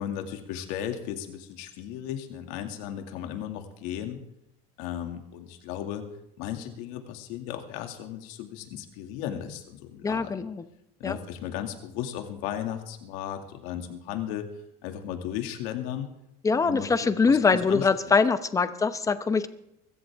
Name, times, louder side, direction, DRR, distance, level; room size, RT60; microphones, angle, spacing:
voice 1, 0.0-4.2 4.8-6.1 6.4-10.5 11.0-14.5 14.8-16.1 16.5-16.9 17.2-17.9, left 10 dB, 80° left, 5 dB, 2.3 m, -35 dB
voice 2, 10.0-10.6 11.0-11.2 16.4-19.5, left 4 dB, 15° left, 12 dB, 0.8 m, -23 dB
23.5 x 13.5 x 3.6 m, 0.83 s
cardioid pair, 140°, 20 cm